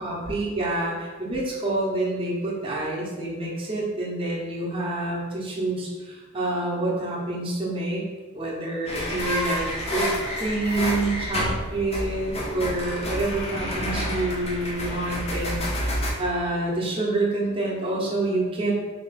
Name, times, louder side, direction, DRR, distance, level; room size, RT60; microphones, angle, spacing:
voice 1, 0.0-8.0 8.3-9.7 9.9-18.7, right 2 dB, 25° right, -5 dB, 0.6 m, -27 dB
sound 1, 8.9-16.1, equal, 25° left, 0.5 m, -29 dB
3.1 x 2.3 x 3.9 m, 1.3 s
head